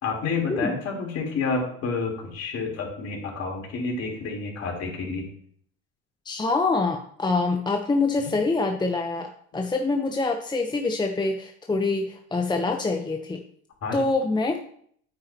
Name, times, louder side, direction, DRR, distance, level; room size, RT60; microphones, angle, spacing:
voice 1, 0.0-5.3 8.2-8.3 13.8-14.0, left 4 dB, 50° left, -1 dB, 3.7 m, -29 dB
voice 2, 6.2-13.4 13.9-14.6, left 3 dB, 15° left, 4 dB, 0.9 m, -25 dB
9.2 x 8.6 x 2.9 m, 0.63 s
hypercardioid pair, 80°, 33 cm